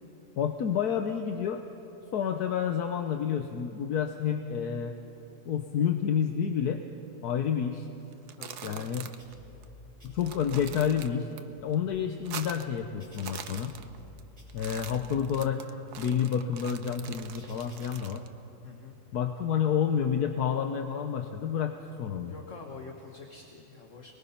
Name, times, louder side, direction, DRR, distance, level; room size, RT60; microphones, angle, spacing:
voice 1, 0.4-1.6 2.1-4.9 5.5-6.8 7.2-7.9 8.6-9.0 10.0-11.3 11.6-13.7 14.5-15.6 16.0-18.2 19.1-22.3, left 8 dB, 80° left, 6 dB, 1.5 m, -29 dB
sound 1, 8.1-9.3 9.6-9.7 10.1-11.4 11.7-12.8 13.1-14.2 14.5-18.3, right 8 dB, 90° right, 1.5 m, -43 dB
voice 2, 8.4-8.9 18.6-19.0 19.4-19.5 22.2-24.1, left 4 dB, 55° left, 2 dB, 1.7 m, -46 dB
sound 2, 9.2-9.7 10.0-10.7 11.3-14.1 14.4-15.1 15.7-17.9, left 3 dB, 20° right, 6.6 m, -54 dB
29.0 x 21.0 x 5.8 m, 2.9 s
omnidirectional pair, 1.6 m